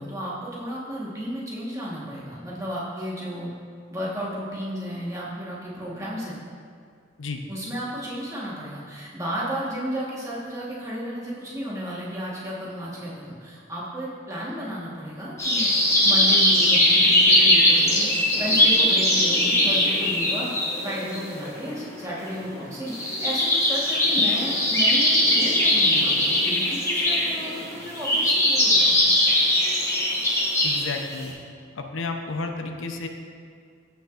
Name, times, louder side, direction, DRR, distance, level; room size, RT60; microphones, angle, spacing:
voice 1, 0.0-3.5 3.9-6.4 7.5-15.7 16.0-20.5 20.8-29.1, equal, 15° right, -6 dB, 1.3 m, -33 dB
sound 1, 15.4-30.8 31.2-31.3, left 1 dB, 15° left, 1.1 m, -20 dB
voice 2, 30.6-31.3 31.7-33.1, left 3 dB, 80° left, 4 dB, 0.7 m, -31 dB
14.5 x 5.7 x 2.5 m, 2.2 s
head